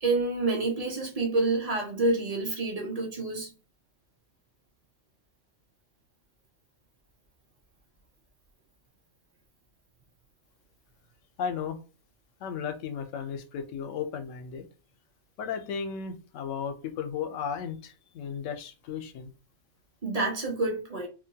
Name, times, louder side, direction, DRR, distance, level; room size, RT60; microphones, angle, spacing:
voice 1, 0.0-3.5 20.0-21.1, right 2 dB, 40° right, 0.6 m, -28 dB
voice 2, 11.4-11.8 12.4-14.7 15.4-19.3, left 7 dB, 80° left, 0.9 m, -35 dB
2.6 x 2.1 x 2.7 m
omnidirectional pair, 1.3 m